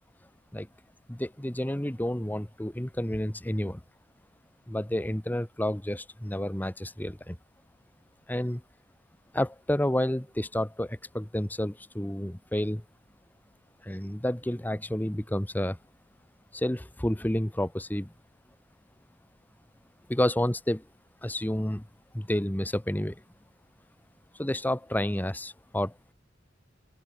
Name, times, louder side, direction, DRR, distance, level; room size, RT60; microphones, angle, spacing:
voice 1, 1.1-3.8 4.7-7.4 8.3-8.6 9.3-12.8 13.8-15.8 16.5-18.1 20.1-20.8 21.2-21.9 22.1-23.2 24.3-26.1, left 1 dB, 10° left, 1.0 m, -30 dB
open air
head